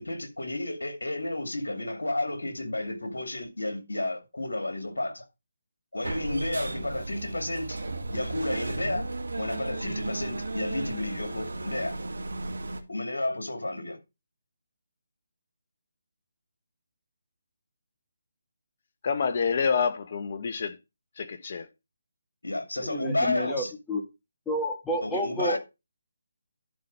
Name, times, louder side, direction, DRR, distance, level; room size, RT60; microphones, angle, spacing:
voice 1, 0.0-5.2 5.9-7.8 8.1-9.0 9.4-12.0 12.9-14.0 22.4-23.7 25.0-25.6, left 2 dB, 90° left, 2.3 m, -31 dB
sound 1, 6.0-12.8, right 2 dB, 80° right, 1.9 m, -34 dB
voice 2, 19.0-20.8 21.2-21.7, left 6 dB, 45° left, 1.2 m, -27 dB
voice 3, 22.8-24.0 24.5-25.6, equal, 5° left, 1.8 m, -30 dB
11.0 x 4.3 x 5.5 m
figure-of-eight pair, 155°, 0 cm